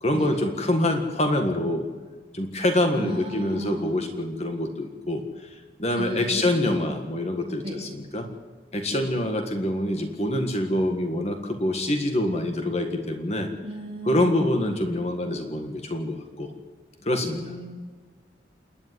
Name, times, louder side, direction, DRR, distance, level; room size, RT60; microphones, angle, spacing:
voice 1, 0.0-1.9 2.3-8.3 8.7-13.5 14.1-16.5 17.0-17.4, left 1 dB, 35° left, 4 dB, 1.7 m, -26 dB
voice 2, 2.9-3.9 5.9-6.9 7.6-7.8 8.9-9.1 13.6-14.5 17.2-17.7, equal, 30° right, -2 dB, 6.8 m, -35 dB
28.5 x 11.0 x 9.4 m, 1.4 s
head